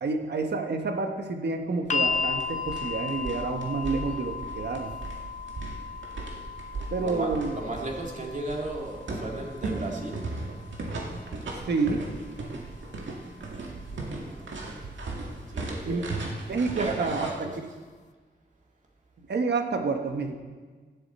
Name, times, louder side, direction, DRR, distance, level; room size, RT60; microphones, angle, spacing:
voice 1, 0.0-4.9 6.9-7.5 11.7-12.0 15.8-16.0 16.5-17.5 19.2-20.4, right 4 dB, 65° right, 5 dB, 1.3 m, -29 dB
sound 1, 1.9-14.0 15.1-15.2, left 5 dB, 40° left, 0.6 m, -36 dB
sound 2, 1.9-17.3, right 3 dB, 90° right, 1.9 m, -37 dB
voice 2, 7.0-10.2 14.2-14.8 15.5-16.1 16.7-17.6, right 2 dB, 40° right, -1 dB, 2.1 m, -35 dB
16.5 x 11.5 x 4.3 m, 1.5 s
wide cardioid pair, 160°, 19 cm